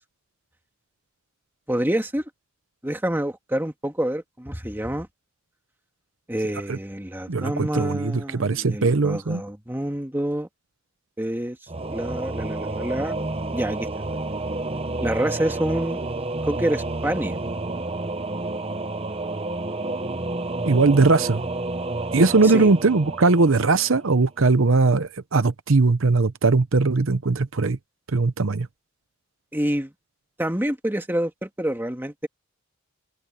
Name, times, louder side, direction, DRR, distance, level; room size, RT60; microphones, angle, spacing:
voice 1, 1.7-2.3 2.8-5.1 6.3-10.5 11.2-11.6 11.9-13.1 13.5-13.9 15.0-16.0 16.4-17.4 22.4-22.7 29.5-29.9 30.4-32.3, right 1 dB, 10° right, 1.8 m, -27 dB
voice 2, 7.3-9.4 20.6-21.4 22.1-27.8 28.1-28.7, right 3 dB, 65° right, 0.8 m, -20 dB
Singing / Musical instrument, 11.7-24.2, right 2 dB, 25° right, 0.8 m, -30 dB
open air
head